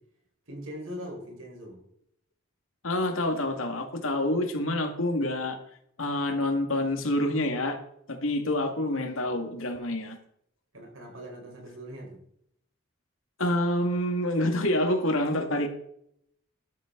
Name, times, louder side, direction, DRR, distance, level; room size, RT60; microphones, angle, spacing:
voice 1, 0.5-1.8 10.7-12.2, equal, 80° right, 1 dB, 4.6 m, -41 dB
voice 2, 2.8-5.6 6.0-7.8 8.1-10.2 13.4-15.7, left 1 dB, 80° left, 4 dB, 2.2 m, -27 dB
12.5 x 12.0 x 3.9 m, 0.70 s
head